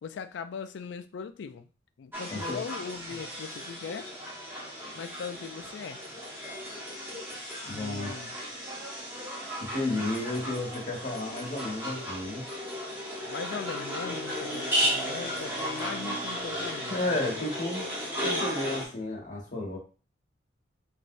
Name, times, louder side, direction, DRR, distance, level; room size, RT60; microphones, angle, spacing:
voice 1, 0.0-1.7 2.0-4.1 4.9-6.0 7.6-8.3 10.0-10.1 13.3-17.5, left 6 dB, 70° left, 11 dB, 0.3 m, -40 dB
sound 1, 2.1-18.9, equal, 10° right, 0.9 m, -35 dB
voice 2, 7.7-8.1 9.6-12.4 16.9-17.9 18.2-19.8, left 2 dB, 45° left, -2 dB, 1.1 m, -32 dB
3.1 x 2.7 x 2.6 m, 0.36 s
head